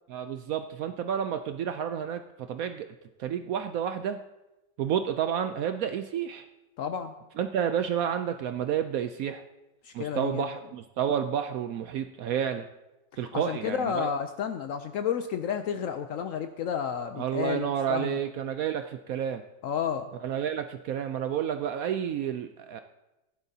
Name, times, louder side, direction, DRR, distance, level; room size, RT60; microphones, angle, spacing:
voice 1, 0.1-2.2 2.5-2.9 3.2-4.2 4.8-6.5 7.4-9.4 9.9-12.7 13.2-14.1 17.2-19.4 20.2-22.8, right 8 dB, 75° right, 8 dB, 0.8 m, -30 dB
voice 2, 6.8-7.1 9.8-10.5 13.3-18.2 19.6-20.1, left 8 dB, 80° left, 8 dB, 0.7 m, -31 dB
16.0 x 11.0 x 2.8 m, 0.99 s
omnidirectional pair, 1.9 m